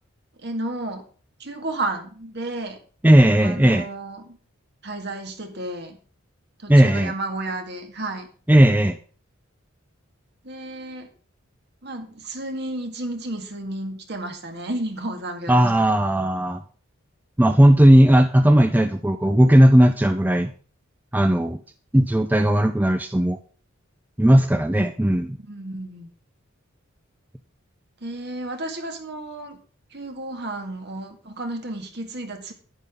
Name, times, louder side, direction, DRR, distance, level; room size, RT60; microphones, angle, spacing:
voice 1, 0.4-1.1 1.4-2.8 3.4-4.4 4.8-6.0 6.6-8.3 10.4-11.1 11.8-15.9 25.5-26.1 28.0-29.6 29.9-32.5, right 2 dB, 55° right, 5 dB, 1.9 m, -32 dB
voice 2, 3.0-3.9 6.7-7.1 8.5-9.0 15.5-16.6 17.4-20.5 21.1-21.6 21.9-23.4 24.2-25.4, equal, 10° right, 8 dB, 0.4 m, -16 dB
11.0 x 9.9 x 3.7 m, 0.39 s
head